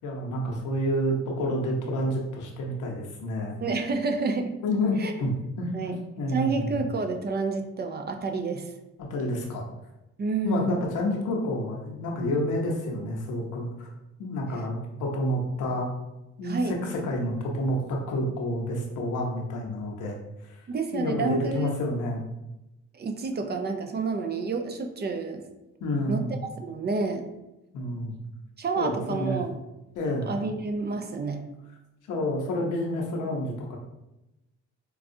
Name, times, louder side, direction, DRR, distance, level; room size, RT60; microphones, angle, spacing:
voice 1, 0.0-3.5 4.6-5.3 5.6-6.7 9.1-9.7 10.4-13.9 14.2-15.9 16.4-20.2 20.4-20.6 20.9-22.2 25.8-26.4 27.7-28.2 28.8-29.4 29.9-30.3 32.1-33.8, left 1 dB, 80° left, 0 dB, 0.9 m, -29 dB
voice 2, 3.6-4.5 5.0-5.1 5.7-6.0 6.3-8.7 10.2-10.8 16.4-16.7 20.7-21.8 22.9-25.4 26.1-26.2 26.6-27.2 28.6-29.6 30.3-31.4, right 3 dB, 35° right, 5 dB, 0.5 m, -29 dB
4.7 x 2.3 x 2.6 m, 0.94 s
cardioid pair, 90°, 30 cm